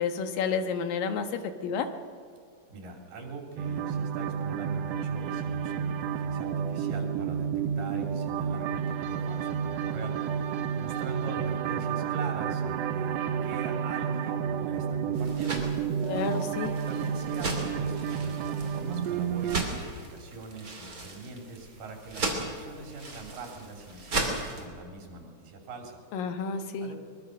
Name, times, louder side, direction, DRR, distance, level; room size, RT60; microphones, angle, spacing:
voice 1, 0.0-1.9 16.1-16.8 26.1-26.9, left 6 dB, 75° left, 8 dB, 3.0 m, -30 dB
voice 2, 2.7-7.5 7.8-15.9 16.9-26.0 26.8-27.0, right 3 dB, 70° right, 2 dB, 4.9 m, -43 dB
sound 1, 3.6-19.6, right 7 dB, 85° right, 1.4 m, -31 dB
sound 2, 15.1-24.6, right 2 dB, 25° right, 3.0 m, -37 dB
22.5 x 22.0 x 6.6 m, 2.1 s
omnidirectional pair, 4.1 m